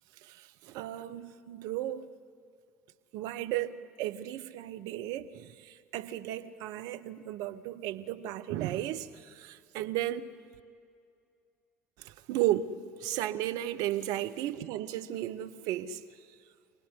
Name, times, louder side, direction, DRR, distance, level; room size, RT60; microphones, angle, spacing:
voice 1, 0.7-2.1 3.1-5.5 5.9-9.1 9.4-10.3 12.3-16.0, right 13 dB, 60° right, 1.0 m, -34 dB
26.0 x 18.5 x 9.8 m
hypercardioid pair, 65°, 7 cm